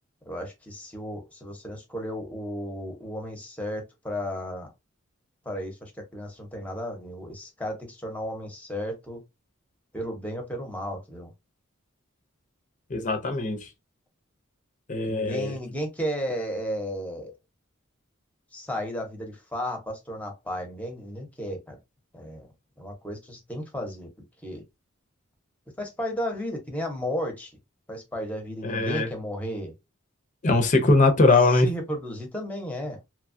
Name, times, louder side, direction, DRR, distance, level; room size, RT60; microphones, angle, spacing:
voice 1, 0.3-4.7 5.4-9.2 9.9-11.3 15.0-17.3 18.5-21.8 22.1-22.5 22.8-24.1 24.4-24.6 25.8-27.6 27.9-29.7 31.6-33.0, equal, 5° left, 0.8 m, -34 dB
voice 2, 12.9-13.7 14.9-15.6 28.6-29.1 30.4-31.7, left 3 dB, 35° left, 0.6 m, -21 dB
2.9 x 2.3 x 2.5 m
head